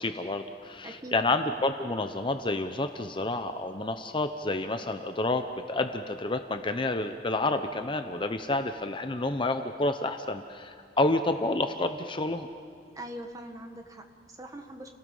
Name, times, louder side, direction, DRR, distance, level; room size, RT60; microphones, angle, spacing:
voice 1, 0.0-12.5, left 2 dB, 30° left, 7 dB, 0.8 m, -29 dB
voice 2, 0.8-1.3 12.9-15.0, right 1 dB, 20° right, 4 dB, 1.7 m, -42 dB
30.0 x 18.5 x 5.6 m, 2.5 s
head